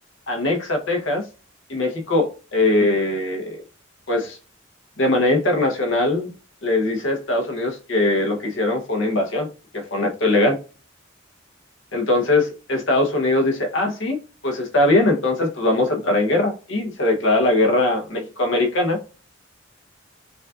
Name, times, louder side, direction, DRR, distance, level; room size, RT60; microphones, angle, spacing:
voice 1, 0.3-1.2 1.7-3.6 4.1-4.4 5.0-6.3 6.6-9.5 9.7-10.6 11.9-14.2 14.4-19.0, left 2 dB, 65° left, 0.9 m, -21 dB
5.2 x 2.4 x 2.4 m
head